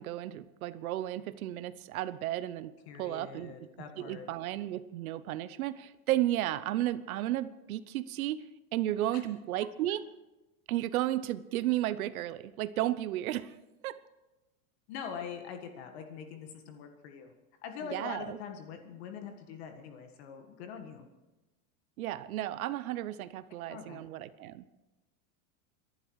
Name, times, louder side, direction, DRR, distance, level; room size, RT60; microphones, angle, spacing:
voice 1, 0.0-2.7 3.0-3.7 4.0-8.5 8.7-10.0 10.7-13.6 13.8-14.0 17.9-18.4 22.0-24.6, right 14 dB, 80° right, 15 dB, 0.9 m, -33 dB
voice 2, 2.9-4.3 9.1-9.2 14.9-17.3 17.6-21.1 23.7-24.0, left 6 dB, 50° left, 5 dB, 1.7 m, -43 dB
26.0 x 11.5 x 4.8 m, 1.0 s
supercardioid pair, 175°, 42 cm